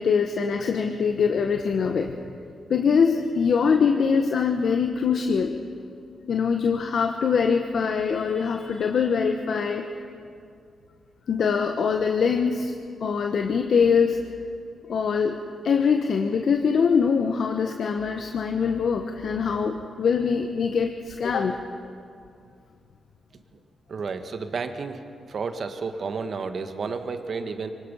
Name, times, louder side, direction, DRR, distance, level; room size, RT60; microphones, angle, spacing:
voice 1, 0.0-2.1 2.7-5.5 6.3-9.9 11.3-12.7 13.0-14.2 14.9-15.4 15.6-21.6, left 6 dB, 70° left, 5 dB, 1.1 m, -23 dB
voice 2, 23.9-25.0 25.3-27.7, right 4 dB, 60° right, 7 dB, 1.6 m, -31 dB
24.0 x 19.5 x 5.6 m, 2.4 s
supercardioid pair, 50°, 0 cm